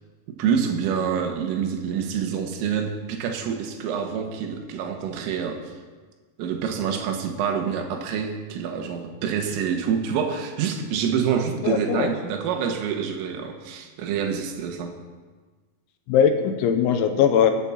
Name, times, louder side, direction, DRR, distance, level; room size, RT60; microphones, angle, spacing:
voice 1, 0.3-5.7 6.4-15.0, right 7 dB, 80° right, 4 dB, 4.0 m, -27 dB
voice 2, 11.6-12.1 16.1-17.5, left 8 dB, 80° left, 6 dB, 3.0 m, -20 dB
25.0 x 9.1 x 4.2 m, 1.4 s
omnidirectional pair, 5.8 m